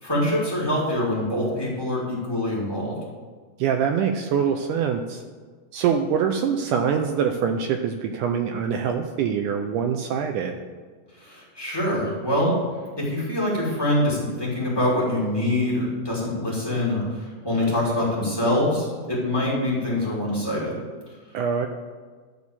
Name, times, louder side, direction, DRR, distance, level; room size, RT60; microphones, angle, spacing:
voice 1, 0.0-3.0 11.2-12.6 13.0-20.8, left 1 dB, 10° left, -6 dB, 1.9 m, -24 dB
voice 2, 3.6-5.2 5.7-10.5 21.3-21.7, right 7 dB, 85° right, 5 dB, 1.9 m, -24 dB
11.5 x 4.2 x 7.2 m, 1.5 s
omnidirectional pair, 4.1 m